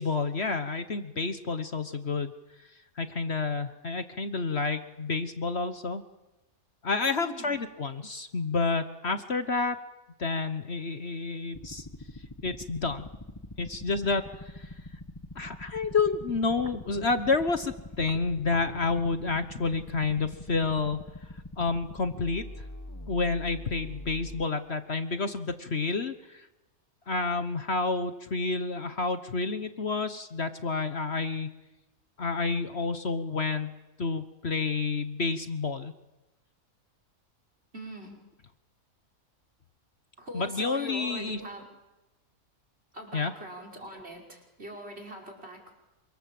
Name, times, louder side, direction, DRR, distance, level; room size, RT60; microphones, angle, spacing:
voice 1, 0.0-2.3 3.0-6.0 6.8-9.8 10.2-11.9 12.4-13.1 13.6-14.7 15.3-21.0 21.6-22.4 23.1-26.5 27.1-31.5 32.2-35.9 40.3-41.4 43.1-43.3, left 4 dB, 50° left, 9 dB, 1.4 m, -29 dB
voice 2, 7.1-7.6 37.7-38.2 40.2-41.7 42.9-45.7, right 1 dB, 45° right, 3 dB, 5.6 m, -42 dB
sound 1, 11.5-24.4, left 1 dB, 15° left, 1.5 m, -43 dB
27.0 x 25.5 x 7.8 m, 1.0 s
omnidirectional pair, 1.5 m